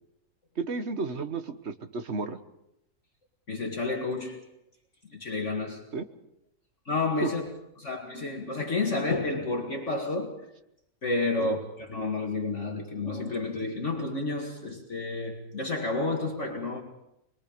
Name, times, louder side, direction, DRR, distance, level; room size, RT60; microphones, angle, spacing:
voice 1, 0.6-2.4 5.9-6.0 7.2-7.3 11.4-11.6, right 4 dB, 45° right, 8 dB, 1.4 m, -32 dB
voice 2, 3.5-4.4 5.1-5.8 6.9-7.5 7.8-10.4 11.0-16.8, left 3 dB, 45° left, 0 dB, 2.3 m, -30 dB
25.0 x 22.0 x 5.2 m, 0.81 s
omnidirectional pair, 1.8 m